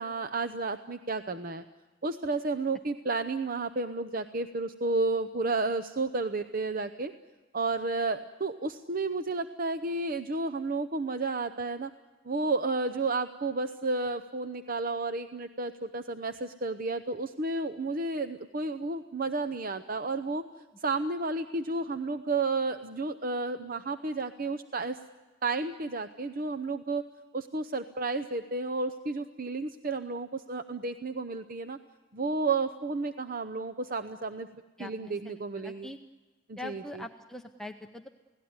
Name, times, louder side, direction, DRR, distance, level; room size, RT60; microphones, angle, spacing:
voice 1, 0.0-1.6 2.0-7.1 7.5-11.9 12.3-20.4 20.8-25.0 25.4-27.0 27.3-31.8 32.1-34.5 34.8-35.9 36.5-37.0, right 3 dB, 45° right, 9 dB, 0.7 m, -32 dB
voice 2, 34.8-35.2 35.6-36.0 36.6-38.1, left 2 dB, ahead, 3 dB, 0.7 m, -42 dB
29.0 x 18.0 x 9.6 m, 1.3 s
head